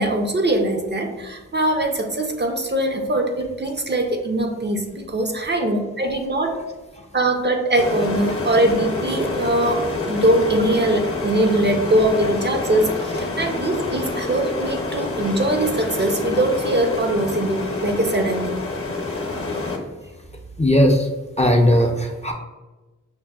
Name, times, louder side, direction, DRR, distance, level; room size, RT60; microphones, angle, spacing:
voice 1, 0.0-6.6 7.1-18.6, right 1 dB, 35° right, 4 dB, 0.5 m, -22 dB
sound 1, 7.8-19.8, left 3 dB, 45° left, 0.8 m, -27 dB
voice 2, 20.6-21.1 21.4-22.3, equal, 20° left, 2 dB, 0.5 m, -17 dB
5.8 x 2.1 x 2.3 m, 1.2 s
cardioid pair, 45°, 31 cm